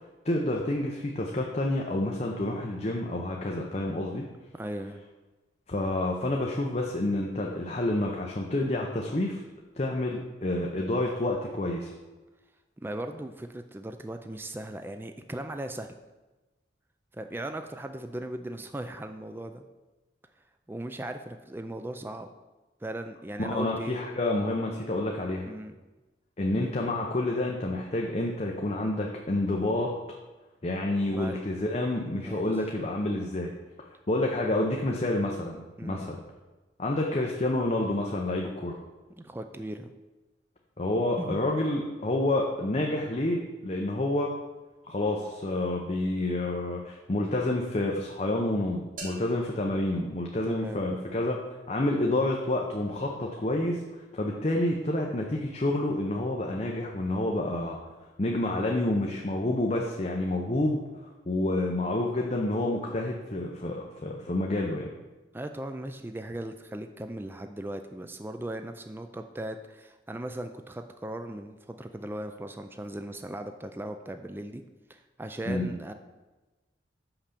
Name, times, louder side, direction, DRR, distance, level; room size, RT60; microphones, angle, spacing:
voice 1, 0.2-4.3 5.7-9.4 9.8-11.9 23.4-25.5 26.4-29.9 30.6-33.5 34.1-36.2 36.8-38.8 40.8-44.3 44.8-51.4 51.7-57.8 58.2-64.9 75.5-75.7, left 1 dB, 35° left, 0 dB, 0.7 m, -29 dB
voice 2, 4.5-5.0 12.8-15.9 17.2-19.6 20.7-22.3 22.8-24.0 25.4-25.7 31.1-31.4 32.1-32.5 35.8-36.1 39.2-39.9 41.2-41.4 50.4-50.9 65.3-74.6 74.9-75.9, right 1 dB, 10° right, 7 dB, 0.3 m, -38 dB
sound 1, 49.0-51.0, right 2 dB, 45° right, 1.4 m, -46 dB
5.9 x 5.6 x 6.7 m, 1.1 s
head